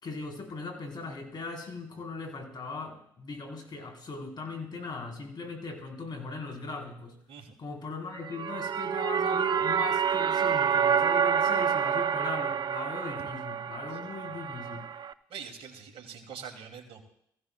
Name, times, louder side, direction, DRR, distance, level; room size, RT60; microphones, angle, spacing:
voice 1, 0.0-7.2 7.6-14.9, left 3 dB, 45° left, 2 dB, 3.8 m, -39 dB
sound 1, 8.2-15.1, right 7 dB, 45° right, 0.6 m, -28 dB
voice 2, 13.9-14.4 15.3-17.0, right 7 dB, 65° right, 5 dB, 2.4 m, -45 dB
23.5 x 15.0 x 2.2 m, 0.70 s
hypercardioid pair, 55°, 10 cm